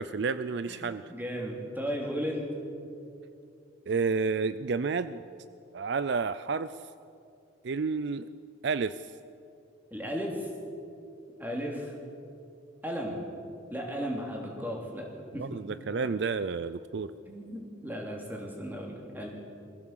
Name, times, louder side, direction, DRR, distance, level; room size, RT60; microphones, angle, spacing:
voice 1, 0.0-1.0 3.9-5.2 5.7-6.7 7.6-8.3 8.6-9.0 15.3-17.1, right 4 dB, 55° right, 14 dB, 0.4 m, -30 dB
voice 2, 0.7-2.5 9.9-10.5 11.4-11.9 12.8-13.2 13.7-15.1 15.3-15.4 15.9-16.0 17.3-19.3, equal, 10° right, 0 dB, 3.1 m, -35 dB
22.0 x 15.5 x 7.5 m, 2.6 s
head